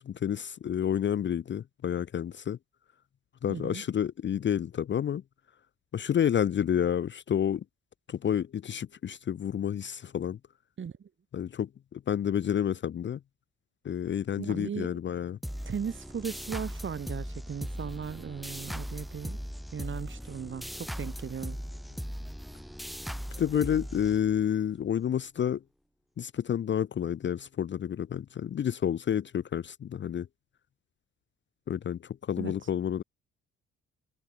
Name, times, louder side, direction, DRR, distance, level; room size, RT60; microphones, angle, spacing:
voice 1, 0.0-2.6 3.4-5.2 5.9-7.6 8.1-10.4 11.3-13.2 13.8-15.4 23.4-25.6 26.2-30.3 31.7-33.0, left 9 dB, 40° left, 0.5 m, -29 dB
voice 2, 3.5-3.8 10.8-11.1 14.4-14.9 15.6-19.4 19.7-21.6 32.4-32.5, right 7 dB, 40° right, 1.8 m, -37 dB
sound 1, 15.4-24.7, equal, ahead, 2.6 m, -39 dB
cardioid pair, 90°, 30 cm